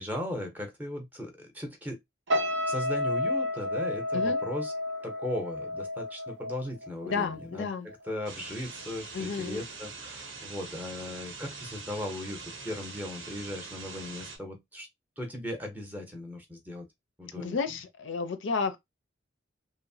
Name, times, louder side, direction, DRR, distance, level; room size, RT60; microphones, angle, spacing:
voice 1, 0.0-2.0 2.7-4.7 5.0-7.7 8.1-14.9 15.2-16.9 17.2-17.6, left 1 dB, 10° right, 0.6 m, -37 dB
sound 1, 2.3-7.6 7.9-8.2, left 1 dB, 60° right, 0.5 m, -31 dB
voice 2, 7.0-7.9 9.1-9.6 17.4-18.8, left 5 dB, 70° left, 0.5 m, -32 dB
sound 2, 8.3-14.4, right 4 dB, 85° right, 0.9 m, -43 dB
3.0 x 2.0 x 2.6 m
head